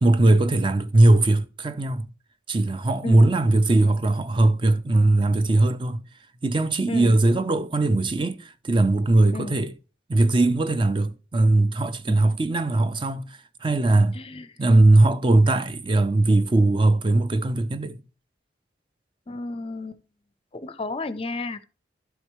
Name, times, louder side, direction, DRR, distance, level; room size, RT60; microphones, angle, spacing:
voice 1, 0.0-2.1 2.5-6.0 6.4-9.7 10.1-14.2 14.6-18.0, right 2 dB, 30° right, 0.4 m, -20 dB
voice 2, 14.1-14.5 19.3-20.0 20.5-21.6, left 2 dB, 30° left, 0.5 m, -32 dB
12.0 x 4.5 x 3.0 m
head